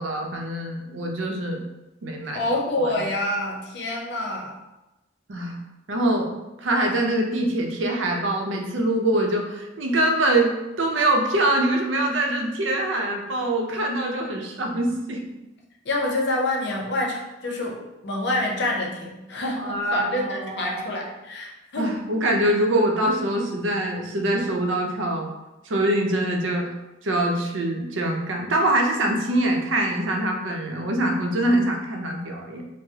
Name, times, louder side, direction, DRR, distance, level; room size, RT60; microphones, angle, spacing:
voice 1, 0.0-1.6 2.0-2.5 5.3-5.6 5.9-6.3 6.6-15.2 19.6-20.9 21.8-25.3 25.6-26.7 27.0-32.6, right 1 dB, 90° right, 1 dB, 0.6 m, -24 dB
voice 2, 2.3-4.5 15.8-21.9, left 1 dB, 65° left, 0 dB, 0.7 m, -27 dB
4.7 x 2.0 x 2.7 m, 0.99 s
head